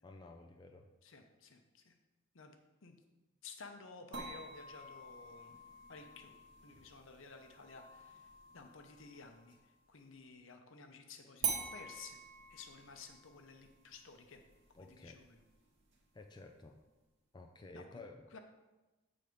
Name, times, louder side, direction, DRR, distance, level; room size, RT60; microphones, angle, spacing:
voice 1, 0.0-0.9 14.7-15.2 16.1-16.8 17.3-18.3, left 2 dB, 20° left, 4 dB, 0.4 m, -53 dB
voice 2, 1.0-1.9 2.3-2.6 2.8-3.0 3.4-5.6 5.9-6.3 6.6-12.2 12.5-14.4 15.0-15.4 17.7-17.9 18.3-18.4, left 4 dB, 70° left, 5 dB, 0.8 m, -54 dB
sound 1, 4.1-9.7 11.4-16.4, right 5 dB, 55° right, 1.2 m, -46 dB
7.8 x 4.1 x 5.1 m, 1.1 s
head